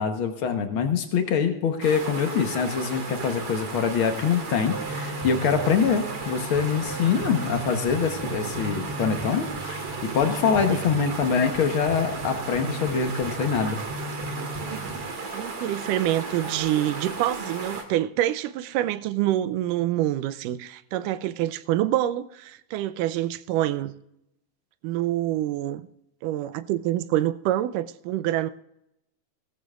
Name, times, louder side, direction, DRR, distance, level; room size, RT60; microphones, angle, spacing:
voice 1, 0.0-9.9 10.1-13.8, left 6 dB, 75° left, 1.2 m, -24 dB
sound 1, 1.8-17.8, right 4 dB, 45° right, 2.6 m, -35 dB
sound 2, 4.7-15.0, right 3 dB, 5° right, 2.3 m, -36 dB
voice 2, 14.7-15.0 15.3-23.9 24.8-25.8 26.2-28.5, right 13 dB, 80° right, 2.1 m, -26 dB
17.5 x 14.5 x 2.4 m
omnidirectional pair, 3.9 m